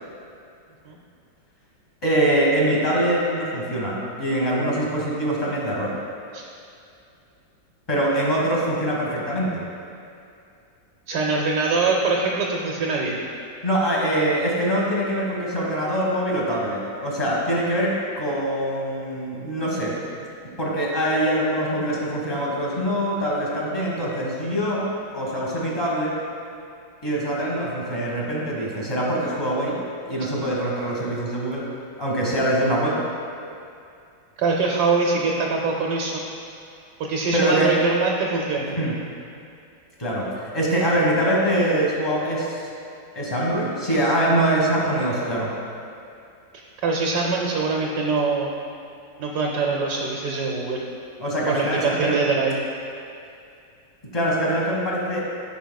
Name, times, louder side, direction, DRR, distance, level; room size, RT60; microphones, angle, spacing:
voice 1, 2.0-5.9 7.9-9.6 13.6-20.0 20.6-26.1 27.0-29.8 30.1-31.6 32.0-33.0 37.3-37.7 38.7-39.0 40.0-42.5 43.1-45.5 51.2-52.2 54.1-55.2, right 1 dB, 15° left, -5 dB, 1.3 m, -23 dB
voice 2, 11.1-13.2 34.4-36.2 37.0-38.8 46.8-48.5 49.2-50.8 51.5-52.6, right 4 dB, 70° right, -1 dB, 1.3 m, -23 dB
13.0 x 6.0 x 2.3 m, 2.5 s
omnidirectional pair, 2.0 m